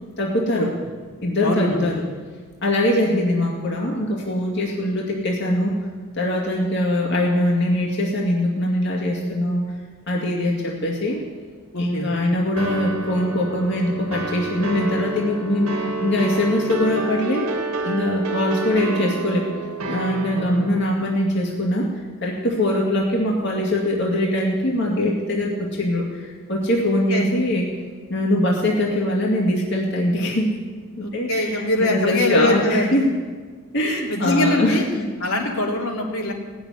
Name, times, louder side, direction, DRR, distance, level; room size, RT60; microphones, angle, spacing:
voice 1, 0.2-0.7 1.2-2.0 2.6-5.7 6.2-9.6 10.1-11.2 11.8-17.5 17.8-19.5 19.9-21.9 22.2-27.7 28.1-30.5 31.0-33.1 33.7-35.1, left 1 dB, 55° left, -2 dB, 2.2 m, -22 dB
voice 2, 1.4-1.9 11.7-12.1 20.3-20.5 27.1-27.3 31.0-32.9 33.9-34.8 35.2-36.3, left 2 dB, 85° left, -2 dB, 3.0 m, -22 dB
sound 1, 12.6-20.8, right 2 dB, 85° right, 1.7 m, -29 dB
18.0 x 7.2 x 9.6 m, 1.5 s
head